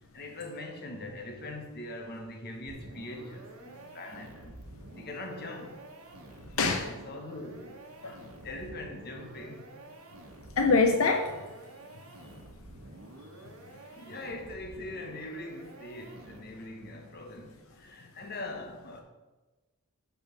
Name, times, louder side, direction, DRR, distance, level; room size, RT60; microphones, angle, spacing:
voice 1, 0.1-4.6 4.9-5.8 6.5-7.8 8.4-9.7 14.0-19.0, left 2 dB, 50° left, 1.2 m, -42 dB
sound 1, 2.7-16.7, right 1 dB, 75° right, 1.1 m, -49 dB
voice 2, 6.6-6.9 8.0-8.2 10.6-11.3, left 3 dB, 80° left, 0.7 m, -24 dB
6.6 x 6.1 x 6.0 m
head